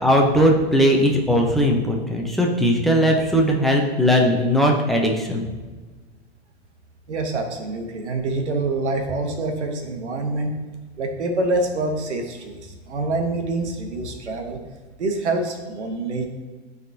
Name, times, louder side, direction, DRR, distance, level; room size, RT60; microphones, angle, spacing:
voice 1, 0.0-5.4, equal, ahead, -1 dB, 0.8 m, -19 dB
voice 2, 7.1-10.5 11.0-14.6 15.0-16.3, right 2 dB, 85° right, 4 dB, 1.3 m, -26 dB
12.0 x 4.0 x 2.8 m, 1.3 s
hypercardioid pair, 125°, 33 cm